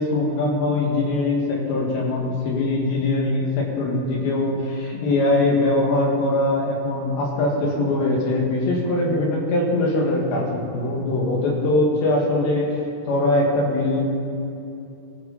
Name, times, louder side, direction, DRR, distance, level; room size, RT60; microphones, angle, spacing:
voice 1, 0.0-12.7 13.1-14.0, left 2 dB, 85° left, -2 dB, 4.4 m, -22 dB
20.0 x 12.5 x 4.3 m, 2.7 s
omnidirectional pair, 4.9 m